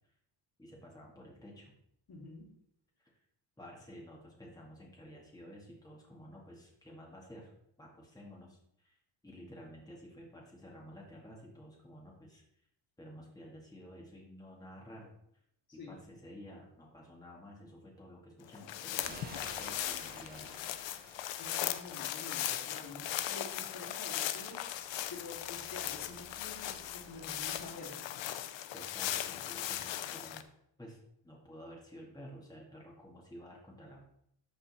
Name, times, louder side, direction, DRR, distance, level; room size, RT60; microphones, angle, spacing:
voice 1, 0.6-1.7 3.0-3.1 3.6-7.5 7.8-9.0 9.2-12.4 13.0-15.1 15.7-20.6 28.7-30.5 30.8-31.0 31.2-34.1, equal, 10° left, -3 dB, 2.1 m, -52 dB
voice 2, 2.1-2.5 15.7-16.0 21.4-24.7 25.1-28.1, left 2 dB, 55° left, -2 dB, 2.9 m, -48 dB
sound 1, 18.5-30.4, left 12 dB, 75° left, 0.7 m, -38 dB
sound 2, 19.0-27.6, right 1 dB, 20° right, 1.9 m, -55 dB
13.0 x 4.3 x 4.3 m, 0.72 s
cardioid pair, 130°, 45 cm